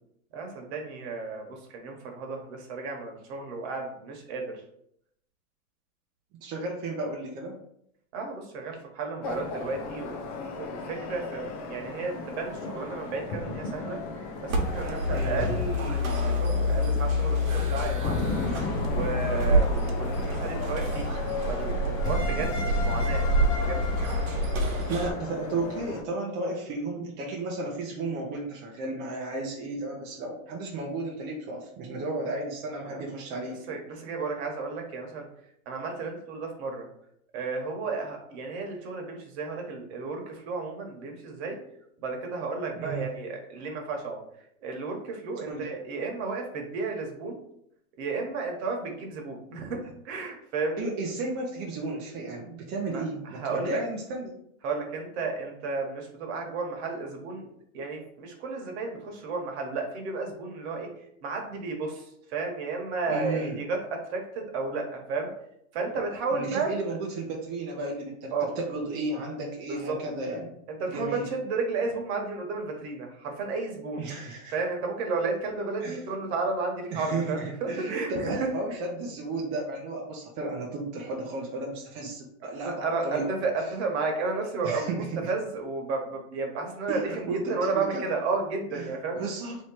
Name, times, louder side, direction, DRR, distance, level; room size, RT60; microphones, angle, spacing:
voice 1, 0.3-4.6 8.1-18.4 18.9-21.2 21.5-23.8 32.8-33.0 33.7-35.2 35.7-36.8 37.3-41.6 42.0-44.2 44.6-47.4 48.0-50.9 52.9-53.8 54.6-60.9 61.2-65.3 65.7-66.7 68.3-68.5 69.7-70.0 70.7-74.1 74.5-78.5 82.4-89.2, right 4 dB, 50° right, 2 dB, 1.2 m, -33 dB
voice 2, 6.4-7.6 15.1-15.4 24.9-33.6 42.7-43.1 45.5-45.6 50.8-54.4 63.1-63.6 66.3-70.5 70.9-71.3 74.0-74.5 75.8-76.0 76.9-83.3 84.6-85.1 86.9-88.1 88.7-88.9 89.2-89.6, right 2 dB, 25° right, -2 dB, 0.6 m, -33 dB
sound 1, 9.2-26.0, left 3 dB, 30° left, 0.4 m, -35 dB
sound 2, 14.5-25.1, equal, 75° right, 1.1 m, -27 dB
3.1 x 2.9 x 4.5 m, 0.72 s
supercardioid pair, 145°, 41 cm